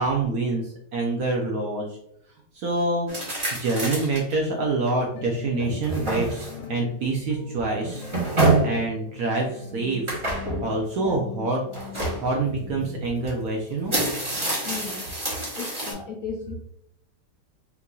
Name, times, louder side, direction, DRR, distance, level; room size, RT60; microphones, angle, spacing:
voice 1, 0.0-2.0 2.5-3.1 3.5-8.1 8.6-10.2 10.6-11.6 12.2-13.9, right 2 dB, 70° right, 0 dB, 0.9 m, -26 dB
sound 1, 3.1-4.3 4.9-5.0 5.5-6.7 7.8-8.8 10.1-10.7 11.7-12.2 13.3-13.4 13.7-15.9, right 2 dB, 25° right, 0.7 m, -26 dB
sound 2, 5.1-13.0, left 5 dB, 85° left, 1.3 m, -41 dB
voice 2, 14.6-15.1 15.5-16.6, left 6 dB, 70° left, 0 dB, 0.9 m, -35 dB
4.6 x 2.6 x 2.3 m, 0.73 s
omnidirectional pair, 2.0 m